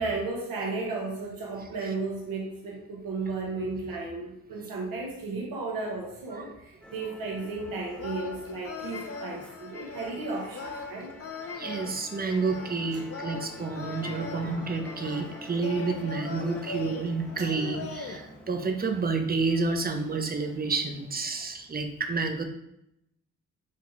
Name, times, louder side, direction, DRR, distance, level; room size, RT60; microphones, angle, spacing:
voice 1, 0.0-11.1 12.9-13.0 21.3-21.4, right 3 dB, 80° right, -1 dB, 1.2 m, -34 dB
Musical instrument, 6.8-21.5, equal, 5° left, 0.8 m, -48 dB
sound 1, 8.0-18.2, left 4 dB, 45° left, 0.7 m, -40 dB
voice 2, 11.5-22.5, right 4 dB, 25° right, 5 dB, 0.7 m, -30 dB
5.9 x 2.4 x 3.1 m, 0.80 s
supercardioid pair, 50°, 34 cm